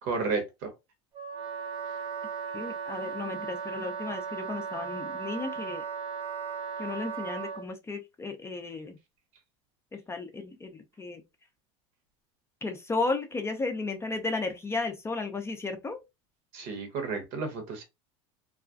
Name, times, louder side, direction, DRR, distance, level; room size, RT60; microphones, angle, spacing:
voice 1, 0.0-0.7 16.5-17.8, right 4 dB, 60° right, 1.0 m, -32 dB
Wind instrument woodwind instrument, 1.1-7.7, right 6 dB, 30° right, 0.8 m, -36 dB
voice 2, 2.5-5.8 6.8-9.0 9.9-11.2 12.6-16.0, left 3 dB, 15° left, 0.4 m, -34 dB
2.4 x 2.2 x 2.4 m
supercardioid pair, 100°, 16 cm